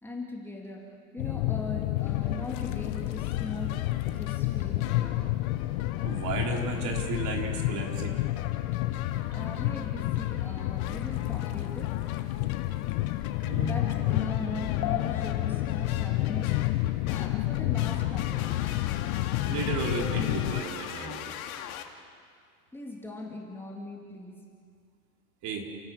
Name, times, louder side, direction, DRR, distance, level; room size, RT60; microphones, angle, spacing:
voice 1, 0.0-3.8 4.1-5.3 9.3-11.9 13.6-16.6 16.8-18.9 22.7-24.5, left 2 dB, 5° left, -2 dB, 2.7 m, -40 dB
sound 1, 1.2-20.6, left 16 dB, 60° left, 1.0 m, -30 dB
sound 2, 2.0-21.9, left 10 dB, 80° left, 2.3 m, -43 dB
voice 2, 6.0-8.2 13.4-13.7 19.4-21.3 25.4-25.7, right 4 dB, 40° right, 1 dB, 4.1 m, -33 dB
29.5 x 17.0 x 7.6 m, 2.2 s
supercardioid pair, 140°, 42 cm